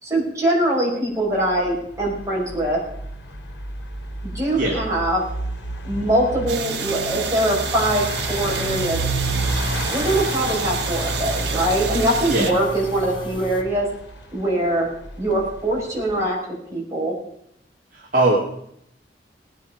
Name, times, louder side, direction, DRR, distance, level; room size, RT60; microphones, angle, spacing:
voice 1, 0.0-2.8 4.3-5.2 5.8-9.0 9.9-13.9 14.3-14.9 15.2-16.4 16.7-17.2, right 1 dB, 15° right, -4 dB, 5.6 m, -22 dB
sound 1, 1.4-16.3, right 1 dB, 80° left, 2.5 m, -31 dB
sound 2, 6.5-12.5, right 6 dB, 75° right, 1.4 m, -29 dB
sound 3, 7.8-13.6, left 3 dB, 25° left, 1.2 m, -36 dB
voice 2, 17.9-18.4, right 2 dB, 45° right, -3 dB, 2.6 m, -19 dB
19.5 x 9.5 x 5.3 m, 0.71 s
head